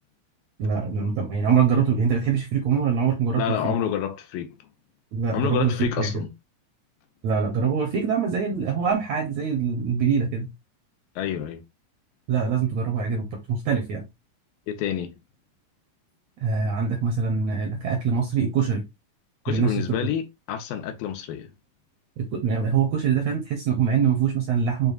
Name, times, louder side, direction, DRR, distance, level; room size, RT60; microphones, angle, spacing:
voice 1, 0.6-3.7 5.1-6.2 7.2-10.5 12.3-14.1 16.4-18.9 19.5-19.9 22.2-24.9, right 6 dB, 75° right, 1.6 m, -24 dB
voice 2, 3.4-4.5 5.3-6.3 11.2-11.6 14.7-15.1 19.5-21.5, left 10 dB, 80° left, 2.5 m, -28 dB
6.8 x 2.4 x 2.3 m
omnidirectional pair, 4.0 m